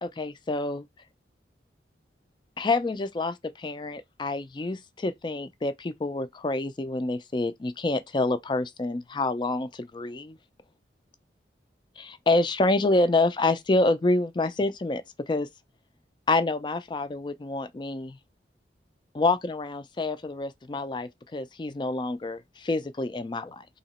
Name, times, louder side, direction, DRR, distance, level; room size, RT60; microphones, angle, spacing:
voice 1, 0.0-0.8 2.6-10.4 12.0-15.5 16.3-18.2 19.1-23.7, left 2 dB, 25° left, 0.3 m, -27 dB
2.9 x 2.9 x 4.1 m
head